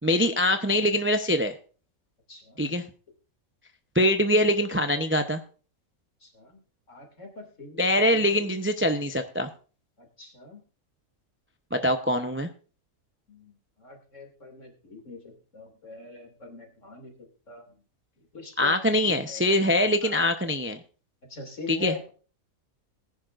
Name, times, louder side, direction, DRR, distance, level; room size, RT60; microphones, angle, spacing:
voice 1, 0.0-1.5 2.6-2.8 3.9-5.4 7.8-9.5 11.7-12.5 18.6-20.8 21.7-21.9, left 1 dB, 10° right, 7 dB, 0.6 m, -23 dB
voice 2, 2.3-2.6 6.2-6.6 6.9-7.8 8.1-8.6 10.0-10.6 13.3-17.8 18.3-19.5 20.0-20.2 21.2-22.1, left 3 dB, 60° left, 3 dB, 3.1 m, -43 dB
20.0 x 10.5 x 2.6 m, 0.38 s
omnidirectional pair, 1.5 m